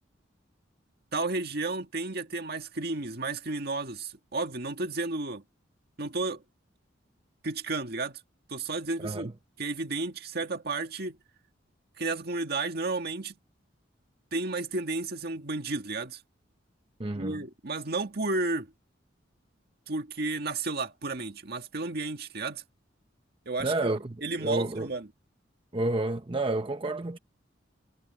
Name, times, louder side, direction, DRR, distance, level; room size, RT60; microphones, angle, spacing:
voice 1, 1.1-5.4 6.0-6.4 7.4-8.2 8.5-9.3 9.6-11.2 12.0-13.3 14.3-16.2 17.1-18.7 19.9-22.6 23.5-23.9 24.2-25.1, right 3 dB, 55° right, 1.9 m, -32 dB
voice 2, 9.0-9.3 17.0-17.4 23.6-24.9 25.7-27.2, right 2 dB, 30° right, 0.8 m, -30 dB
head